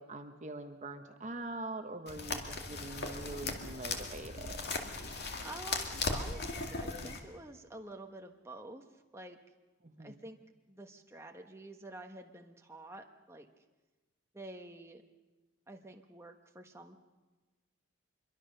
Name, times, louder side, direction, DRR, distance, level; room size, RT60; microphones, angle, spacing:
voice 1, 0.0-4.9 9.8-10.1, right 2 dB, 35° right, 6 dB, 1.1 m, -44 dB
sound 1, 2.1-7.2, left 3 dB, 50° left, 2.2 m, -38 dB
voice 2, 5.4-8.8 9.1-9.4 10.0-10.4 10.7-13.5 14.3-15.0 15.7-17.0, right 2 dB, 15° right, 3 dB, 1.3 m, -49 dB
25.5 x 23.0 x 6.7 m, 1.2 s
head